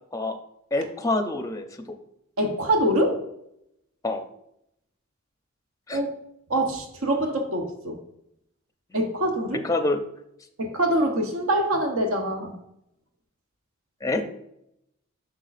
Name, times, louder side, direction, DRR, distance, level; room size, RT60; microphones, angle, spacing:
voice 1, 0.7-1.7 4.0-4.2 5.9-6.0 9.6-10.0 14.0-14.2, left 2 dB, 15° left, 6 dB, 0.5 m, -26 dB
voice 2, 2.4-3.2 5.9-6.1 6.5-8.0 8.9-9.6 10.6-12.6, right 1 dB, 80° right, 4 dB, 1.0 m, -24 dB
8.0 x 6.0 x 2.5 m, 0.79 s
head